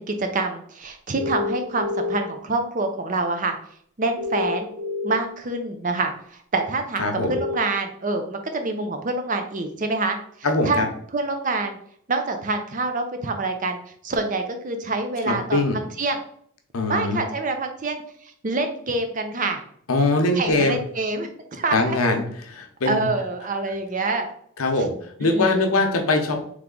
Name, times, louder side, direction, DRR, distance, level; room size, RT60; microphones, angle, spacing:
voice 1, 0.0-3.6 4.0-4.7 5.0-10.2 10.6-10.8 11.1-11.8 12.1-15.6 16.0-16.2 16.9-18.0 18.4-19.6 20.4-22.2 22.9-24.3 25.2-25.7, right 3 dB, 35° right, 6 dB, 0.5 m, -26 dB
sound 1, 1.2-2.2 4.2-5.2 7.2-7.6, left 3 dB, 65° right, 1.4 m, -28 dB
voice 2, 7.0-7.4 10.4-10.9 15.3-15.8 16.7-17.2 19.9-20.8 21.7-22.3 22.5-23.1 24.6-24.9 25.2-26.5, left 2 dB, 80° left, 4 dB, 0.8 m, -22 dB
3.4 x 3.2 x 3.8 m, 0.64 s
head